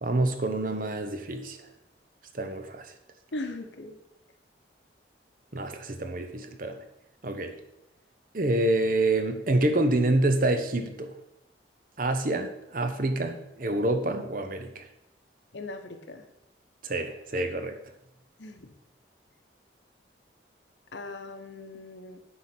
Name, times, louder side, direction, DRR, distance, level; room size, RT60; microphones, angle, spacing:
voice 1, 0.0-1.6 2.3-2.9 5.5-6.8 7.2-7.6 8.3-11.1 12.0-14.8 16.8-17.8, right 2 dB, 45° right, 7 dB, 0.8 m, -27 dB
voice 2, 3.3-4.0 15.5-16.2 18.4-18.7 20.9-22.2, left 2 dB, 75° left, 6 dB, 1.0 m, -39 dB
9.6 x 3.9 x 6.1 m, 0.84 s
head